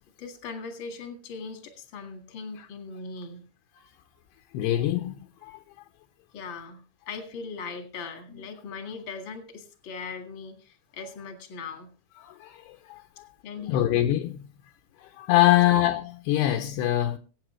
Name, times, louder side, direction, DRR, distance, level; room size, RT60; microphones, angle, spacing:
voice 1, 0.2-3.4 6.3-11.9 13.4-13.9 15.4-15.6, left 5 dB, 45° left, 1.6 m, -39 dB
voice 2, 4.5-5.6 8.3-8.4 12.2-13.3 13.7-14.5 15.0-17.2, left 14 dB, 75° left, 2.7 m, -24 dB
23.0 x 8.6 x 3.3 m
omnidirectional pair, 5.1 m